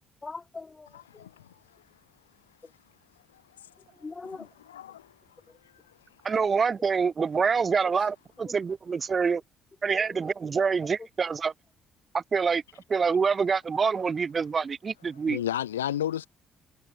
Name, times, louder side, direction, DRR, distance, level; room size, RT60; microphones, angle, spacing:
voice 1, 0.2-1.3 2.6-2.7 4.0-4.5 5.5-5.6 8.4-8.5 9.9-10.3 11.0-11.1 15.3-15.4, left 4 dB, 25° left, 5.8 m, -42 dB
voice 2, 1.1-1.5 3.3-3.4 4.7-5.1 15.3-16.3, left 11 dB, 80° left, 1.9 m, -32 dB
voice 3, 6.2-9.4 9.8-11.5 12.1-12.6 12.9-15.4, right 5 dB, 35° right, 2.7 m, -26 dB
figure-of-eight pair, 45°, 0 cm